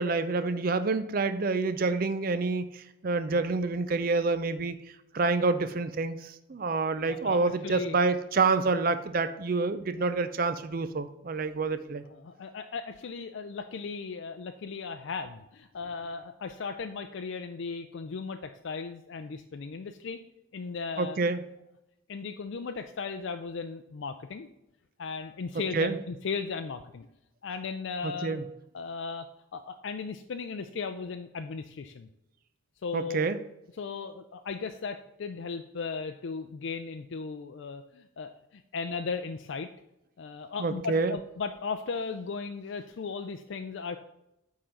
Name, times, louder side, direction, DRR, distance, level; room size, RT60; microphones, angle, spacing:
voice 1, 0.0-4.8 5.1-12.0 21.0-21.4 25.7-26.0 28.0-28.4 32.9-33.4 40.6-41.2, right 3 dB, 45° right, 11 dB, 0.4 m, -28 dB
voice 2, 7.0-8.0 12.1-20.2 20.5-21.2 22.1-24.5 25.0-27.1 27.4-28.4 28.7-29.3 29.5-32.1 32.8-33.2 33.8-39.7 40.2-44.0, left 5 dB, 65° left, 6 dB, 0.4 m, -36 dB
8.9 x 3.8 x 5.2 m, 0.86 s
head